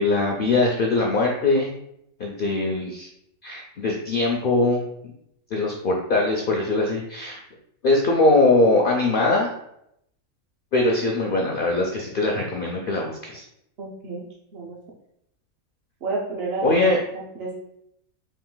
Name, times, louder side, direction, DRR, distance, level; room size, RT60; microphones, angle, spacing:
voice 1, 0.0-1.7 2.2-3.1 3.4-4.8 5.5-7.4 7.8-9.5 10.7-13.4 16.6-17.0, left 2 dB, 70° left, -1 dB, 0.5 m, -21 dB
voice 2, 13.8-14.2 14.5-14.8 16.0-16.8 17.1-17.5, right 3 dB, 55° right, -4 dB, 0.8 m, -30 dB
3.7 x 2.5 x 3.8 m, 0.76 s
omnidirectional pair, 1.5 m